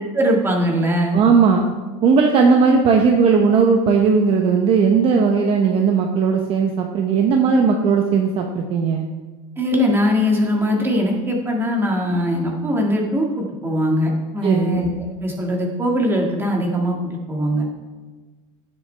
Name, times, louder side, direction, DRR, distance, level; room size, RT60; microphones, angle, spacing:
voice 1, 0.1-1.2 7.5-7.6 9.6-17.0 17.3-17.7, equal, 15° right, 0 dB, 1.9 m, -21 dB
voice 2, 1.1-1.7 2.0-9.1 14.4-14.8, right 5 dB, 35° right, 3 dB, 0.9 m, -17 dB
16.0 x 7.8 x 3.4 m, 1.3 s
supercardioid pair, 145°, 16 cm